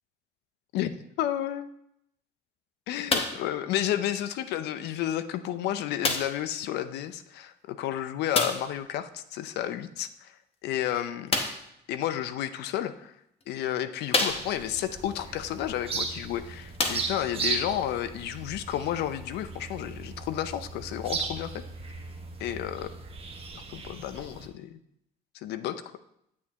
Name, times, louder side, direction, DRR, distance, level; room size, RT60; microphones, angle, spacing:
voice 1, 0.7-1.7 2.9-10.3 10.6-11.4 11.9-13.1 13.5-21.6 22.4-22.9 23.5-24.8 25.3-25.8, left 11 dB, 80° left, 12 dB, 0.5 m, -31 dB
sound 1, 3.1-3.5 4.4-4.5 6.0-6.5 8.3-8.7 11.3-11.7 12.7-12.8 13.4-13.5 14.1-14.8 16.1-16.2 16.7-17.4 18.3-18.4, left 3 dB, 35° left, 0.9 m, -28 dB
sound 2, 14.3-24.5, right 4 dB, 35° right, 1.2 m, -37 dB
8.3 x 7.1 x 2.9 m, 0.78 s
cardioid pair, 110°, 17 cm